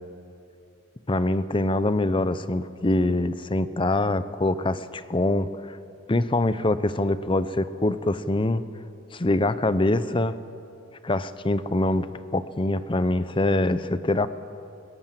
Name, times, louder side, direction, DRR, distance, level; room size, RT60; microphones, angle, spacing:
voice 1, 1.1-5.8 6.1-8.6 9.1-10.4 11.0-12.1 12.3-14.3, left 2 dB, 25° left, 14 dB, 0.7 m, -24 dB
20.5 x 19.5 x 7.6 m, 2.7 s
head